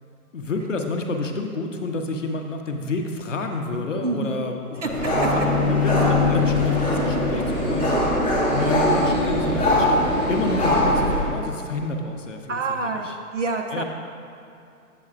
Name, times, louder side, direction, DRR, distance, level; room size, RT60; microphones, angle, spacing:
voice 1, 0.3-8.0 8.5-13.1 13.7-13.8, left 3 dB, 55° left, 3 dB, 0.6 m, -29 dB
voice 2, 4.0-4.4 4.8-5.1 12.5-13.8, right 3 dB, 55° right, 4 dB, 0.6 m, -27 dB
sound 1, 4.9-11.2, equal, ahead, 1.3 m, -22 dB
Bowed string instrument, 5.1-10.4, left 7 dB, 15° right, 1.2 m, -26 dB
8.4 x 7.6 x 2.4 m, 2.6 s
hypercardioid pair, 180°, 45 cm